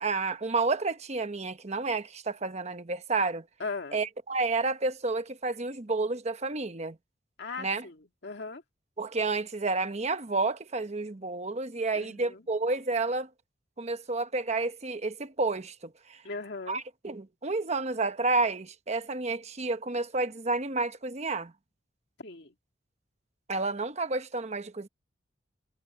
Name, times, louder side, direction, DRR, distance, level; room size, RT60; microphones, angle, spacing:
voice 1, 0.0-3.4 3.9-7.0 7.6-7.8 9.0-13.3 13.8-16.2 16.7-21.5 23.5-24.9, right 3 dB, 35° right, 1.0 m, -30 dB
voice 2, 3.6-4.0 7.4-8.6 11.9-12.4 16.2-16.8 22.2-22.5, left 4 dB, 60° left, 2.3 m, -38 dB
head